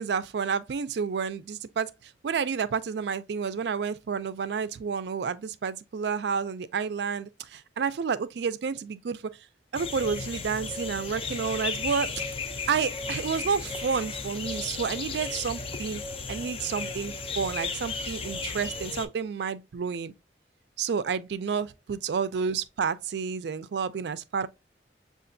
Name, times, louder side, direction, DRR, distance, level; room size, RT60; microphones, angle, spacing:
voice 1, 0.0-1.9 2.2-9.2 9.7-12.2 12.7-16.0 16.3-20.1 20.8-24.5, right 6 dB, 70° right, 0.4 m, -30 dB
sound 1, 9.7-19.0, left 4 dB, 30° left, 0.4 m, -35 dB
6.6 x 2.5 x 2.5 m
head